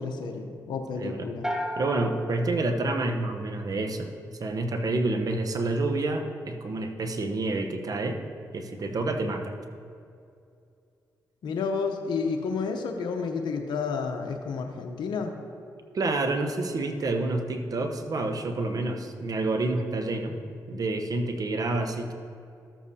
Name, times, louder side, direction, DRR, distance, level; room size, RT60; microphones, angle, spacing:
voice 1, 0.0-1.5 11.4-15.3, left 5 dB, 75° left, 4 dB, 0.7 m, -30 dB
voice 2, 0.9-1.3 1.8-4.1 4.4-8.2 8.5-9.6 15.9-20.4 20.7-22.1, right 2 dB, 50° right, 5 dB, 0.9 m, -28 dB
sound 1, 1.4-3.7, equal, 5° right, 1.0 m, -35 dB
13.0 x 7.3 x 2.8 m, 2.5 s
supercardioid pair, 55°, 8 cm